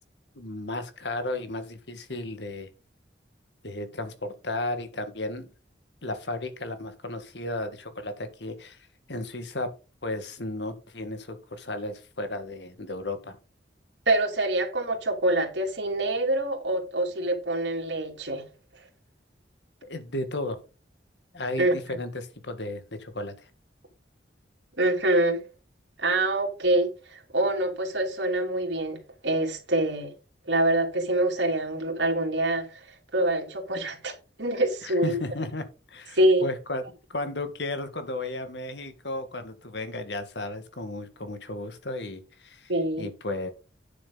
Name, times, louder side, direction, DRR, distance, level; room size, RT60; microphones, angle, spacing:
voice 1, 0.4-2.7 3.6-5.5 6.0-8.8 9.1-9.7 10.0-13.4 19.9-20.6 21.3-23.5 34.8-36.8 37.1-42.7 43.0-43.5, left 2 dB, 70° left, 1.7 m, -34 dB
voice 2, 14.1-18.4 21.6-21.8 24.8-25.4 26.0-30.1 30.5-32.8 33.1-34.1 34.4-35.2 36.1-36.4 42.7-43.1, right 1 dB, 75° right, 2.9 m, -25 dB
9.5 x 7.3 x 3.9 m
head